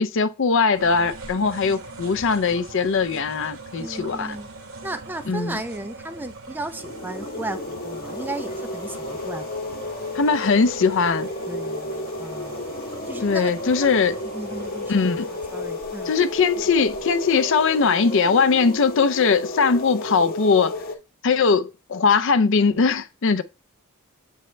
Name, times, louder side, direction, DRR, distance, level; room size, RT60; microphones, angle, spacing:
voice 1, 0.0-4.4 5.3-5.6 10.1-11.3 13.2-14.2 14.9-15.3 16.1-20.7 21.2-23.4, left 5 dB, 60° left, 0.5 m, -20 dB
sound 1, 0.7-18.9, right 3 dB, 65° right, 1.1 m, -42 dB
voice 2, 3.8-4.5 4.8-10.1 11.5-12.7 13.1-13.9 14.3-16.1, right 2 dB, 10° right, 0.3 m, -35 dB
sound 2, 6.8-20.9, left 1 dB, 45° left, 0.9 m, -32 dB
7.7 x 4.4 x 3.1 m
head